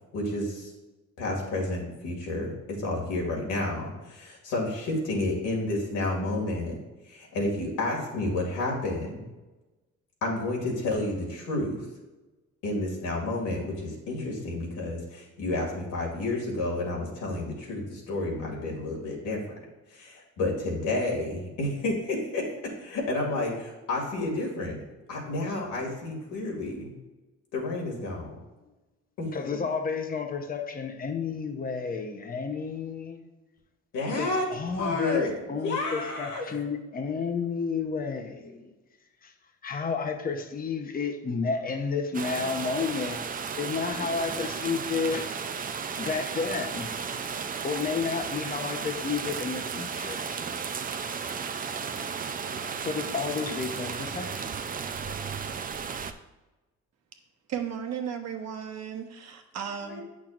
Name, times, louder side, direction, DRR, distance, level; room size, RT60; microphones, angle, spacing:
voice 1, 0.1-0.7 1.2-6.8 7.0-9.3 10.2-11.8 12.6-19.4 19.9-22.5 22.8-24.8 25.1-26.9 27.5-28.3 29.2-29.6 33.9-36.5 59.9-60.0, left 2 dB, 90° left, -2 dB, 2.2 m, -30 dB
voice 2, 29.3-33.2 34.2-38.7 39.2-39.3 39.6-45.3 46.0-46.9 47.6-50.3 51.0-51.3 52.8-54.5, left 5 dB, 30° left, 5 dB, 0.8 m, -31 dB
sound 1, 42.1-56.1, right 6 dB, 30° right, 0.4 m, -34 dB
voice 3, 57.5-60.0, right 8 dB, 60° right, 4 dB, 1.0 m, -35 dB
8.6 x 6.0 x 2.5 m, 1.1 s
cardioid pair, 90°, 30 cm